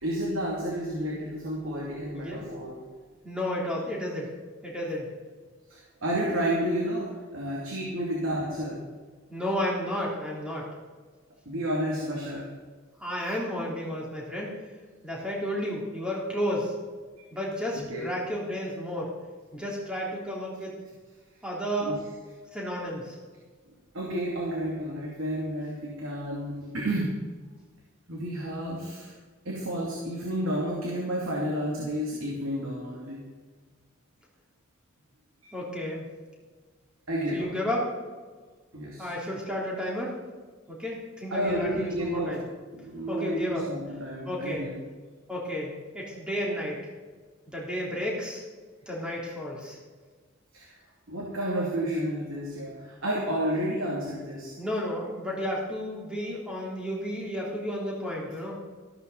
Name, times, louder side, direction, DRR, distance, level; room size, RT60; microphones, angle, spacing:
voice 1, 0.0-2.8 5.7-8.8 11.5-12.5 17.9-18.1 21.8-22.0 23.9-27.1 28.1-29.1 29.4-33.2 35.4-35.5 37.1-37.5 38.7-39.1 41.3-42.3 42.7-44.8 50.5-50.8 51.1-54.5, equal, 70° right, -3 dB, 2.6 m, -31 dB
voice 2, 3.2-4.3 4.6-5.1 9.3-10.7 13.0-14.5 15.0-16.7 17.3-19.1 19.5-20.7 21.4-22.0 22.5-23.2 35.5-36.1 37.3-37.9 39.0-40.2 40.7-42.4 43.1-43.6 44.2-44.7 45.3-46.8 47.5-48.4 48.9-49.8 54.6-58.6, equal, 5° right, -4 dB, 3.3 m, -32 dB
14.5 x 13.0 x 4.1 m, 1.5 s
head